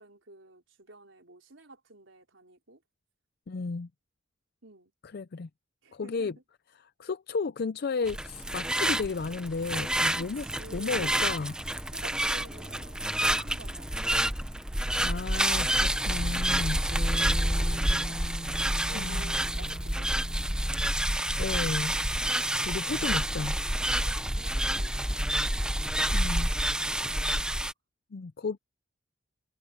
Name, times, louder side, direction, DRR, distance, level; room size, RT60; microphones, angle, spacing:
voice 1, 0.0-2.8 4.6-4.9 5.8-6.3 10.2-11.2 11.9-14.0 16.6-16.9 17.2-18.4 18.9-20.6 22.3-22.4 23.9-25.6 26.8-27.4, right 2 dB, 85° right, 4.0 m, -51 dB
voice 2, 3.5-3.9 5.0-5.5 5.9-6.3 7.0-10.4 10.7-11.5 15.0-16.8 18.9-19.3 21.4-22.0 22.6-23.6 26.1-26.5 28.1-28.6, left 4 dB, 55° left, 0.5 m, -33 dB
sound 1, 8.0-27.7, right 1 dB, 5° right, 0.7 m, -28 dB
Bass guitar, 16.9-23.2, equal, 40° left, 3.5 m, -43 dB
head